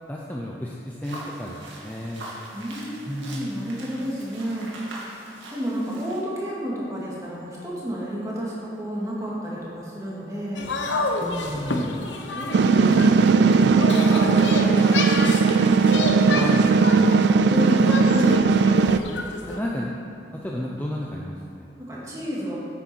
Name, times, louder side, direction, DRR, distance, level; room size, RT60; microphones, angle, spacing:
voice 1, 0.1-1.6 1.8-2.3 3.1-3.5 11.2-12.1 16.3-16.8 19.5-20.1 20.4-21.7, left 1 dB, 10° left, -3 dB, 0.6 m, -32 dB
sound 1, 1.0-6.2, right 1 dB, 85° right, 2.1 m, -41 dB
voice 2, 2.5-4.7 5.5-10.7 12.4-15.7 16.7-18.7 21.8-22.5, equal, 15° right, -6 dB, 2.2 m, -30 dB
sound 2, 10.6-19.6, left 2 dB, 80° left, 0.9 m, -29 dB
sound 3, 12.5-19.0, right 5 dB, 65° right, 0.3 m, -18 dB
9.6 x 8.8 x 4.5 m, 2.6 s
head